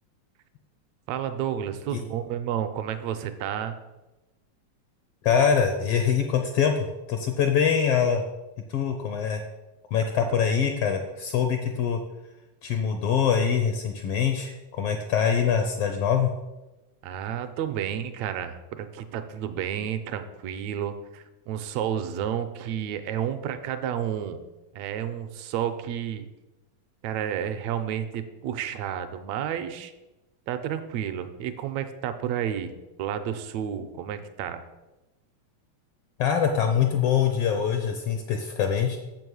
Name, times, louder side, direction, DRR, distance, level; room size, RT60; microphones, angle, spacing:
voice 1, 1.1-3.8 10.1-10.3 17.0-24.4 24.7-26.3 27.0-29.9 30.5-32.7 33.0-34.6, right 9 dB, 80° right, 9 dB, 1.7 m, -31 dB
voice 2, 5.2-8.2 8.7-9.4 9.9-12.0 12.6-16.3 36.2-39.0, left 7 dB, 80° left, 5 dB, 1.4 m, -24 dB
7.1 x 5.4 x 6.2 m, 1.1 s
omnidirectional pair, 3.4 m